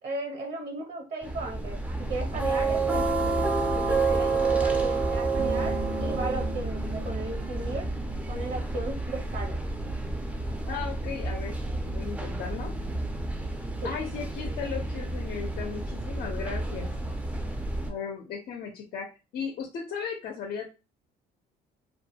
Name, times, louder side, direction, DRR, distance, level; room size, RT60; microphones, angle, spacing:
voice 1, 0.0-1.8 2.1-7.9 8.3-9.6 13.8-13.9, right 2 dB, 65° right, 3 dB, 0.8 m, -36 dB
sound 1, 1.2-17.9, right 3 dB, 10° right, 0.5 m, -29 dB
Bass guitar, 5.4-9.7 10.0-11.6, equal, 90° right, 0.7 m, -44 dB
voice 2, 10.7-12.7 13.8-16.9 17.9-19.1 19.3-20.7, left 6 dB, 55° left, 3 dB, 0.6 m, -36 dB
2.3 x 2.2 x 2.7 m, 0.29 s
cardioid pair, 110°, 17 cm